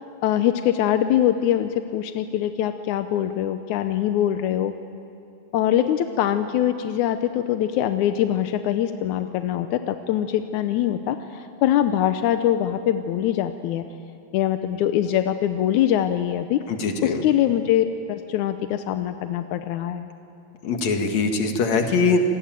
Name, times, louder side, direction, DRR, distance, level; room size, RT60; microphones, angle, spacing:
voice 1, 0.2-4.7 5.5-13.8 14.3-16.6 17.0-20.1, left 11 dB, 90° left, 8 dB, 2.2 m, -23 dB
voice 2, 16.7-17.2 20.6-22.2, left 4 dB, 70° left, 4 dB, 3.2 m, -22 dB
26.5 x 20.0 x 9.1 m, 2.8 s
omnidirectional pair, 3.4 m